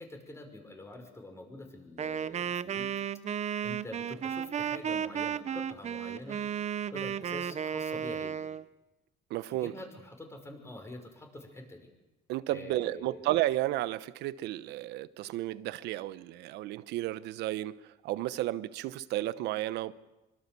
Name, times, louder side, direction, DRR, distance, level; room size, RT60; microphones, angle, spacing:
voice 1, 0.0-2.9 3.6-6.5 6.9-8.4 9.5-11.9 12.5-13.2, left 1 dB, 15° left, 5.9 m, -46 dB
Wind instrument woodwind instrument, 2.0-8.6, right 8 dB, 40° right, 0.8 m, -34 dB
voice 2, 9.3-9.7 12.3-17.8 18.0-19.9, right 15 dB, 85° right, 1.0 m, -32 dB
25.0 x 24.5 x 6.9 m
cardioid pair, 110°, 17 cm